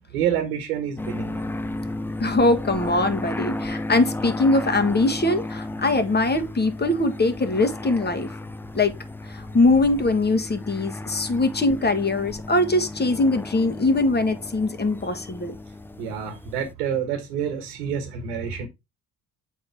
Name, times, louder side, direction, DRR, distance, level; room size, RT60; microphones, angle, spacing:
voice 1, 0.1-1.4 16.0-18.7, right 8 dB, 80° right, 1.4 m, -28 dB
sound 1, 1.0-16.7, left 2 dB, 5° left, 0.3 m, -34 dB
voice 2, 2.2-8.3 8.7-8.9 9.3-15.5, left 2 dB, 20° left, 1.6 m, -22 dB
7.4 x 4.7 x 3.5 m
hypercardioid pair, 55°, 45 cm